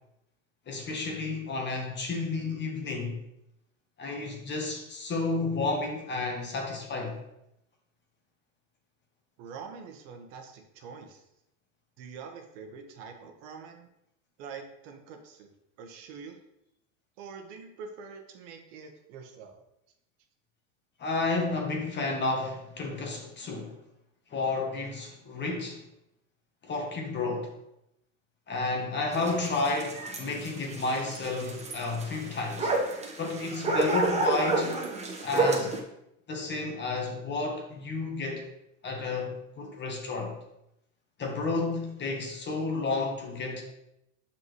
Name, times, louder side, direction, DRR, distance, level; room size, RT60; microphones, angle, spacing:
voice 1, 0.7-3.2 4.0-7.2 21.0-23.7 24.3-25.8 26.6-27.5 28.5-32.7 33.2-34.8 35.2-35.7 36.3-38.5 38.8-40.3 41.2-43.6, left 3 dB, 25° left, 1.3 m, -31 dB
voice 2, 9.4-11.2 12.0-13.9 14.4-15.5 15.8-16.4 17.2-19.6, right 5 dB, 60° right, 1.2 m, -45 dB
sound 1, 29.1-35.8, right 2 dB, 15° right, 1.2 m, -30 dB
7.0 x 5.6 x 3.2 m
supercardioid pair, 120°, 42 cm